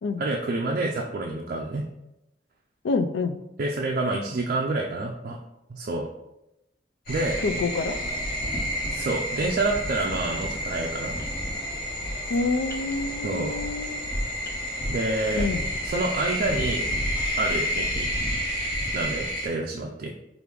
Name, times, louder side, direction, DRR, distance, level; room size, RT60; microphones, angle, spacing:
voice 1, 0.2-1.8 3.6-5.4 5.7-6.1 7.1-7.4 8.9-11.1 13.2-13.5 14.9-15.5 15.8-16.9 17.4-18.1 18.9-20.1, right 2 dB, 50° right, 0 dB, 0.4 m, -28 dB
voice 2, 2.8-3.4 7.4-8.0 12.3-14.0 15.3-15.7, left 3 dB, 85° left, 9 dB, 0.4 m, -27 dB
sound 1, 7.1-19.5, equal, 55° left, 1.4 m, -30 dB
sound 2, 11.2-11.4 12.7-12.9 14.4-14.6 16.2-16.8 17.4-17.7 18.6-19.0, left 1 dB, 15° left, 0.5 m, -46 dB
4.8 x 2.5 x 3.3 m, 0.90 s
head